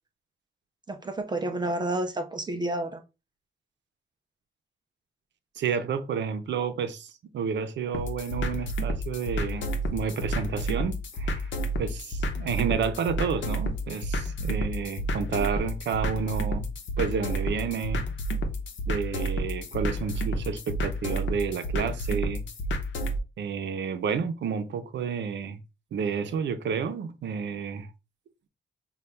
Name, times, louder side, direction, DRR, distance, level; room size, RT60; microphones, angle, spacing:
voice 1, 0.9-3.0, right 1 dB, 25° right, 0.4 m, -30 dB
voice 2, 5.6-11.5 11.8-16.7 17.0-18.0 18.9-22.4 23.4-25.6 25.9-27.9, right 6 dB, 75° right, 0.6 m, -30 dB
sound 1, 7.9-23.2, equal, 85° left, 0.8 m, -30 dB
5.6 x 2.3 x 3.2 m
wide cardioid pair, 180°, 19 cm